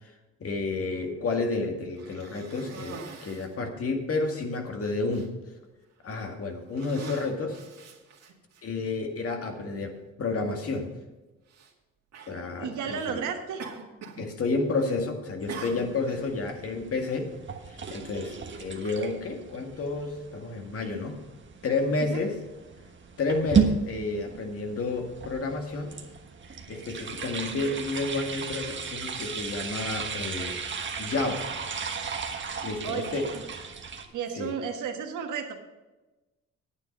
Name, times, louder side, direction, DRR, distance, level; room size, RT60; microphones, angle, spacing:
voice 1, 0.4-5.3 6.0-7.6 8.6-10.9 12.3-13.2 14.2-17.3 17.9-21.2 21.6-22.4 23.2-25.9 26.7-30.6 31.0-31.5 32.6-33.3 34.4-34.5, left 3 dB, 50° left, 3 dB, 2.0 m, -30 dB
Cough, 1.9-3.6 4.3-4.4 4.8-5.3 6.0-6.3 6.7-8.6 9.6-9.7 11.5-11.7 12.1-12.4 13.6-14.3 14.5-15.0 15.5-16.2, right 4 dB, 60° right, 2.2 m, -43 dB
voice 2, 12.6-13.7 22.0-22.2 32.8-33.5 34.1-35.6, right 7 dB, 80° right, 4 dB, 1.5 m, -33 dB
sound 1, 15.4-34.0, right 6 dB, 40° right, 1.4 m, -34 dB
9.5 x 9.3 x 5.4 m, 1.1 s
cardioid pair, 90°, 30 cm